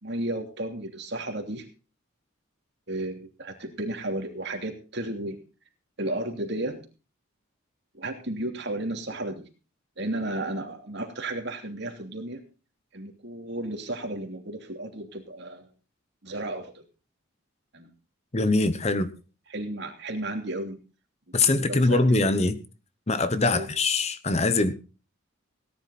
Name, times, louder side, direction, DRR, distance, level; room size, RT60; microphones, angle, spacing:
voice 1, 0.0-1.6 2.9-5.4 6.0-6.8 8.0-9.5 10.0-12.4 12.9-15.7 16.2-16.7 17.7-17.9 19.5-20.8 21.4-22.3 23.5-23.7, right 1 dB, 55° right, 3.0 m, -33 dB
voice 2, 18.3-19.1 21.3-22.5 23.1-24.7, left 3 dB, 30° left, 0.9 m, -23 dB
17.5 x 10.5 x 4.2 m
head